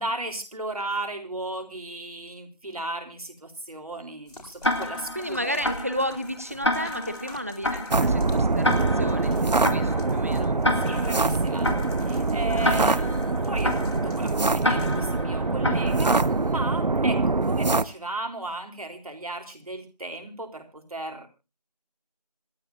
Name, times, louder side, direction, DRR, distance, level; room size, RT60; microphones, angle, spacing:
voice 1, 0.0-5.7 10.8-11.7 12.1-21.3, right 2 dB, 60° right, 5 dB, 3.9 m, -35 dB
sound 1, 4.3-15.1, left 1 dB, 70° left, 4.3 m, -48 dB
Tick-tock, 4.6-16.5, left 1 dB, 45° left, 2.0 m, -30 dB
voice 2, 5.1-10.6 12.5-12.8, equal, 20° right, 11 dB, 1.1 m, -33 dB
sound 2, 7.9-17.8, right 3 dB, 85° right, 0.9 m, -24 dB
26.5 x 11.0 x 2.7 m, 0.30 s
figure-of-eight pair, 180°, 21 cm